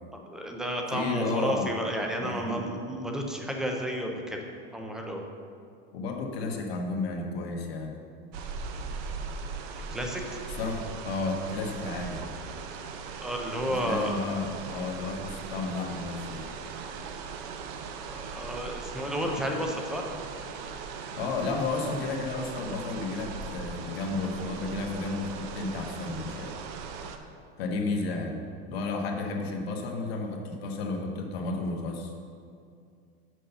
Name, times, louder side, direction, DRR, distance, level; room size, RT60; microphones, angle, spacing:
voice 1, 0.3-4.4 4.7-5.2 9.9-10.2 13.2-14.1 17.9-20.0, equal, ahead, 1 dB, 0.3 m, -31 dB
voice 2, 0.9-1.7 2.2-2.6 5.9-8.0 10.6-12.3 13.7-16.5 21.1-26.5 27.6-28.4 28.7-32.1, left 3 dB, 90° left, 2 dB, 1.3 m, -32 dB
sound 1, 8.3-27.2, right 5 dB, 50° right, 0.7 m, -39 dB
6.3 x 5.5 x 6.8 m, 2.3 s
supercardioid pair, 165°, 30 cm